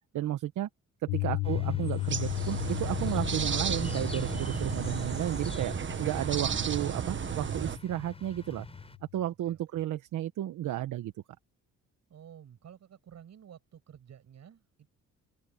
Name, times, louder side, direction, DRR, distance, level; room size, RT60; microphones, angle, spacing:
voice 1, 0.1-0.7 1.0-5.7 6.0-8.7 9.1-11.1, right 13 dB, 75° right, 1.2 m, -33 dB
Piano, 1.1-9.2, left 25 dB, 85° left, 1.2 m, -36 dB
sound 1, 1.4-9.0, left 2 dB, 20° left, 6.3 m, -42 dB
sound 2, 2.0-7.8, right 7 dB, 40° right, 1.4 m, -33 dB
voice 2, 9.5-9.8 12.1-14.9, right 9 dB, 60° right, 7.5 m, -52 dB
open air
cardioid pair, 90°, 30 cm